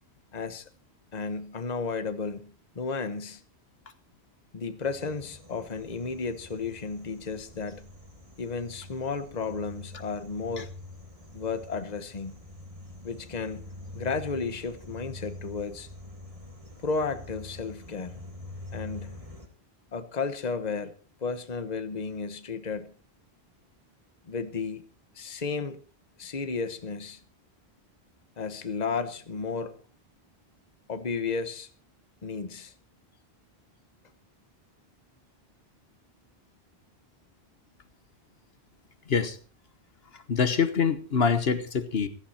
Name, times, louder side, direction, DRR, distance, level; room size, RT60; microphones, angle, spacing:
voice 1, 0.3-0.7 1.1-3.4 4.5-7.9 8.4-10.7 11.3-12.3 13.0-13.6 13.9-15.9 16.8-18.2 18.7-19.2 19.9-22.9 24.2-24.8 25.1-25.8 26.2-27.2 28.4-29.8 30.9-31.7 32.2-32.7, left 4 dB, 40° left, 1.2 m, -33 dB
sound 1, 4.8-19.5, left 2 dB, 30° right, 2.7 m, -45 dB
voice 2, 39.1-39.4 40.1-42.1, left 6 dB, 70° left, 1.4 m, -25 dB
16.0 x 14.5 x 4.3 m
omnidirectional pair, 1.1 m